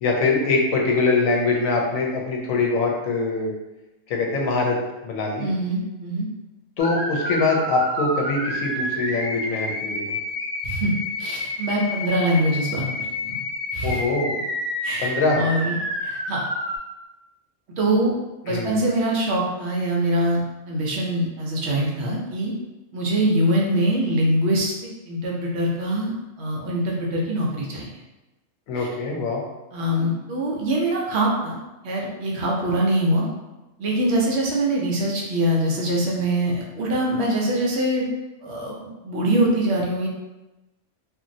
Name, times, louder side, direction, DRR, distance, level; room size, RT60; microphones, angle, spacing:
voice 1, 0.0-3.5 4.1-4.8 5.0-5.5 6.8-10.2 13.8-14.3 15.0-15.4 18.5-18.8 28.7-29.4, left 3 dB, 85° left, 0 dB, 1.0 m, -23 dB
voice 2, 5.4-6.3 10.6-10.9 11.2-13.4 13.7-14.0 14.8-15.8 16.0-16.4 17.8-18.1 18.4-20.4 20.7-22.5 22.9-24.7 25.1-26.1 26.4-27.9 28.8-28.9 29.7-31.6 31.8-33.2 33.8-38.1 38.4-40.1, right 1 dB, 65° right, -2 dB, 0.8 m, -23 dB
sound 1, 6.8-16.8, left 1 dB, 30° right, 1.2 m, -29 dB
2.9 x 2.5 x 2.6 m, 1.0 s
omnidirectional pair, 1.4 m